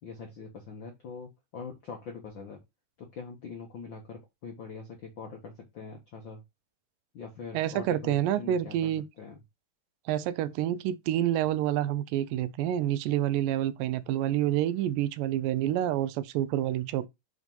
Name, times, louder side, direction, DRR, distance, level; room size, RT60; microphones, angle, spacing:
voice 1, 0.0-2.6 3.0-6.4 7.1-9.4, left 5 dB, 70° left, 1.1 m, -43 dB
voice 2, 7.5-9.0 10.1-17.1, right 12 dB, 85° right, 2.3 m, -28 dB
6.1 x 3.6 x 5.4 m
omnidirectional pair, 3.9 m